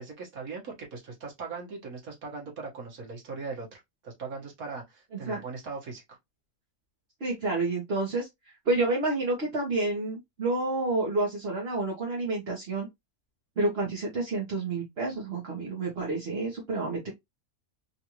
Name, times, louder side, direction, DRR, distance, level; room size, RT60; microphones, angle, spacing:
voice 1, 0.0-6.2, right 4 dB, 70° right, 1.8 m, -39 dB
voice 2, 7.2-8.3 8.7-12.9 13.6-17.1, right 2 dB, 45° right, 1.3 m, -29 dB
3.9 x 2.5 x 2.9 m
omnidirectional pair, 1.5 m